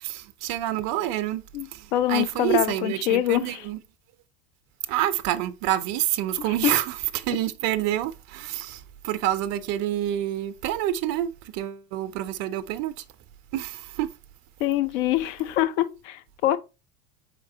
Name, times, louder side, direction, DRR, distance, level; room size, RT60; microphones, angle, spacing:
voice 1, 0.0-3.8 4.9-13.0 13.5-14.1, right 12 dB, 40° right, 0.5 m, -28 dB
voice 2, 1.5-3.6 6.6-6.7 14.6-16.6, left 13 dB, 50° left, 0.6 m, -24 dB
4.6 x 3.6 x 2.8 m
hypercardioid pair, 80°, 45 cm